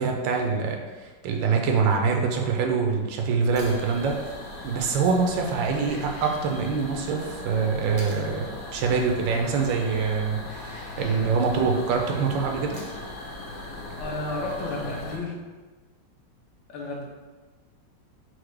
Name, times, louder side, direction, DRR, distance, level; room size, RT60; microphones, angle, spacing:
voice 1, 0.0-4.2 4.6-8.5 8.7-12.8, right 5 dB, 85° right, 2 dB, 1.3 m, -25 dB
sound 1, 3.5-15.2, left 1 dB, 60° left, 0.9 m, -39 dB
sound 2, 3.6-3.9 6.1-6.2 8.0-8.3 10.3-10.7 12.7-13.2 15.3-15.4, right 1 dB, 50° right, 0.4 m, -45 dB
voice 2, 13.9-15.4 16.7-17.0, left 2 dB, 80° left, -2 dB, 1.6 m, -32 dB
4.6 x 2.1 x 4.7 m, 1.3 s
omnidirectional pair, 2.0 m